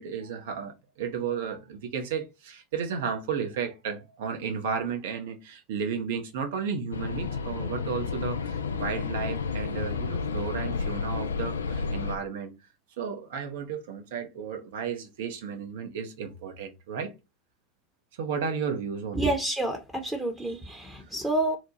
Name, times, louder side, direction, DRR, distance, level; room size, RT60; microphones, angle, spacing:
voice 1, 0.0-12.5 13.0-17.1 18.2-19.3, right 6 dB, 60° right, 0.8 m, -33 dB
sound 1, 6.9-12.1, left 5 dB, 75° left, 0.3 m, -31 dB
voice 2, 19.2-21.6, right 1 dB, 5° right, 0.8 m, -29 dB
3.0 x 2.2 x 3.8 m
figure-of-eight pair, 80°, 0 cm